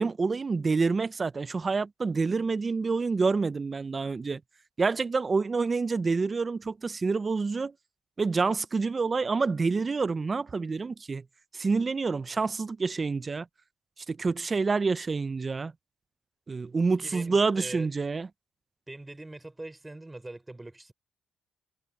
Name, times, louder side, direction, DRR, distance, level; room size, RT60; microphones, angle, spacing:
voice 1, 0.0-4.4 4.8-7.7 8.2-11.2 11.5-13.5 14.1-15.7 16.5-18.3, right 4 dB, 30° right, 0.5 m, -27 dB
voice 2, 17.0-17.9 18.9-20.9, right 2 dB, 15° right, 3.5 m, -42 dB
cardioid pair, 90°, 0 cm